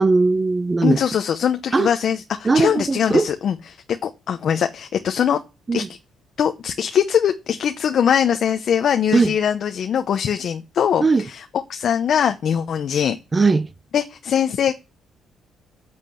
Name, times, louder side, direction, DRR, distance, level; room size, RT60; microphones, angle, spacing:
voice 1, 0.0-1.0 1.7-1.9 2.4-3.3 5.7-5.9 9.1-9.3 11.0-11.3 13.3-13.7, right 3 dB, 30° right, 0.8 m, -18 dB
voice 2, 0.8-3.6 4.0-5.4 5.7-5.8 6.4-13.2 13.9-14.7, left 8 dB, 60° left, 0.8 m, -21 dB
8.5 x 8.1 x 7.0 m
cardioid pair, 90°, 0 cm